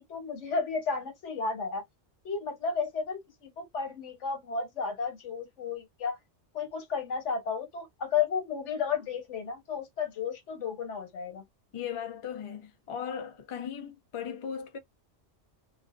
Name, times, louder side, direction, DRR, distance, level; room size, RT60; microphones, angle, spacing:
voice 1, 0.0-1.8 2.2-6.2 6.5-11.4, left 5 dB, 85° left, 1.3 m, -33 dB
voice 2, 11.7-14.8, left 8 dB, 45° left, 0.4 m, -37 dB
2.4 x 2.3 x 2.3 m
omnidirectional pair, 1.2 m